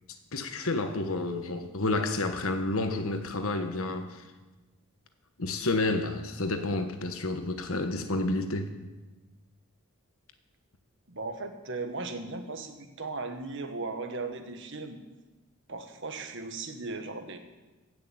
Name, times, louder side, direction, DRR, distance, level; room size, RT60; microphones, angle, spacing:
voice 1, 0.3-4.3 5.4-8.7, left 2 dB, 65° left, 1.3 m, -30 dB
voice 2, 11.1-15.0 15.7-17.4, right 3 dB, 55° right, 1.3 m, -37 dB
16.0 x 6.7 x 7.9 m
head